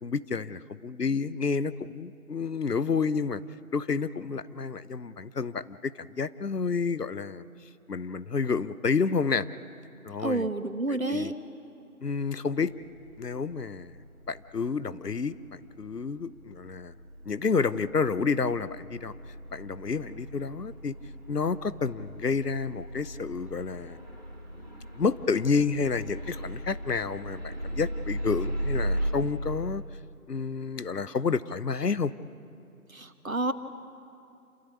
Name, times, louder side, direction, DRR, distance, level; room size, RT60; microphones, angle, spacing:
voice 1, 0.0-3.4 3.7-7.4 7.9-9.5 10.0-10.5 10.9-11.3 12.0-12.7 13.2-14.0 14.3-16.9 17.2-19.1 19.5-20.9 21.3-24.0 24.7-29.8 30.3-32.1, left 5 dB, 85° left, 16 dB, 0.9 m, -30 dB
voice 2, 10.2-11.3 32.9-33.5, right 2 dB, 60° right, 10 dB, 1.4 m, -29 dB
sound 1, 12.6-29.1, right 1 dB, 30° right, 3.2 m, -38 dB
27.5 x 16.0 x 8.5 m, 2.6 s
figure-of-eight pair, 180°, 46 cm